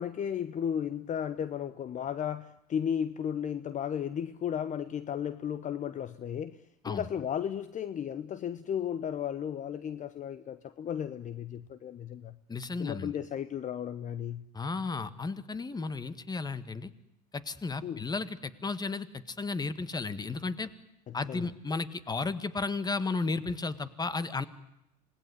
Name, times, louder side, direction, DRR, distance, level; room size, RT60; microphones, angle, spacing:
voice 1, 0.0-12.4 12.8-14.5 17.8-18.0 21.1-21.5, left 9 dB, 35° left, 14 dB, 1.0 m, -34 dB
voice 2, 12.5-13.1 14.5-16.9 17.3-20.7 21.1-24.5, left 3 dB, 20° left, 14 dB, 1.8 m, -34 dB
26.5 x 19.0 x 9.7 m, 0.85 s
hypercardioid pair, 75°, 21 cm